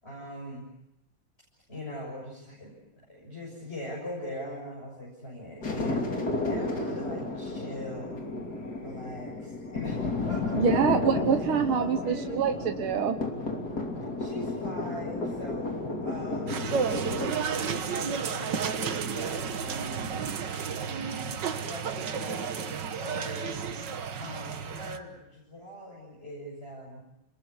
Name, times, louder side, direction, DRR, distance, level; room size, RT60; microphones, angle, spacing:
voice 1, 0.0-0.7 1.7-8.3 8.8-10.5 11.3-11.5 11.7-12.8 14.2-16.7 17.4-20.0 20.8-23.7 24.2-27.0, equal, 30° left, -4 dB, 7.2 m, -41 dB
sound 1, 5.6-17.3, left 2 dB, 45° left, 3.5 m, -32 dB
voice 2, 10.6-13.2, right 7 dB, 80° right, 6 dB, 2.0 m, -26 dB
sound 2, 16.5-25.0, right 6 dB, 60° right, 1.8 m, -32 dB
28.5 x 21.5 x 8.2 m, 0.91 s
omnidirectional pair, 2.3 m